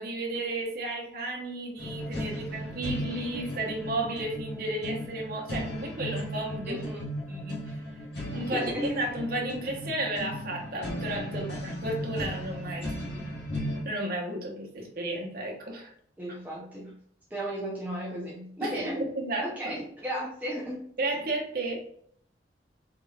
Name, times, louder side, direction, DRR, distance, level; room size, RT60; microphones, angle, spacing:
voice 1, 0.0-6.9 7.3-7.6 8.3-13.2 13.8-15.9 18.6-19.8 21.0-21.8, right 2 dB, 55° right, -1 dB, 0.8 m, -33 dB
sound 1, 1.8-13.8, equal, 65° left, 1.2 m, -36 dB
voice 2, 6.6-7.0 8.5-8.9 11.3-11.4 16.2-16.9 17.3-19.0 19.4-20.8, equal, 10° right, -5 dB, 0.6 m, -34 dB
3.7 x 3.3 x 2.3 m, 0.65 s
head